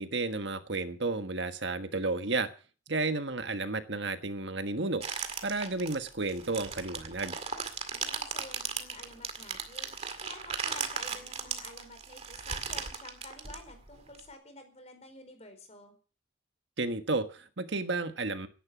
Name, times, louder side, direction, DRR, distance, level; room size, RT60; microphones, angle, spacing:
voice 1, 0.0-2.5 2.9-7.3 16.8-18.5, right 3 dB, 70° right, 9 dB, 1.4 m, -32 dB
sound 1, 5.0-14.2, right 6 dB, 35° right, 2.1 m, -37 dB
voice 2, 7.9-9.9 10.2-15.9, left 2 dB, 35° left, 7 dB, 4.5 m, -50 dB
17.5 x 11.0 x 6.1 m, 0.38 s
head